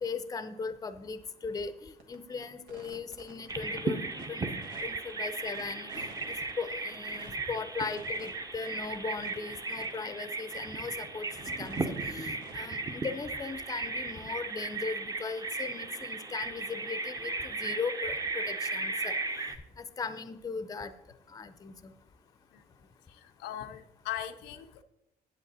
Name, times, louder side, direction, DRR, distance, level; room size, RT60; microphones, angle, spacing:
voice 1, 0.0-4.5 4.8-6.1 6.6-19.2 19.8-20.9 21.3-21.9, left 5 dB, 20° left, 12 dB, 0.6 m, -38 dB
sound 1, 2.0-2.1 2.4-3.5 4.1-4.3 4.6-6.5 6.9-7.3 7.8-8.3 8.7-8.8 8.9-9.0 9.2-10.0 10.5-10.6 11.0-12.7, right 4 dB, 90° right, 1.3 m, -51 dB
Bird vocalization bird call bird song, 3.5-19.6, right 3 dB, 20° right, 0.8 m, -36 dB
voice 2, 23.4-24.8, left 11 dB, 90° left, 7 dB, 0.6 m, -38 dB
8.2 x 8.1 x 4.2 m, 0.88 s
cardioid pair, 110°, 17 cm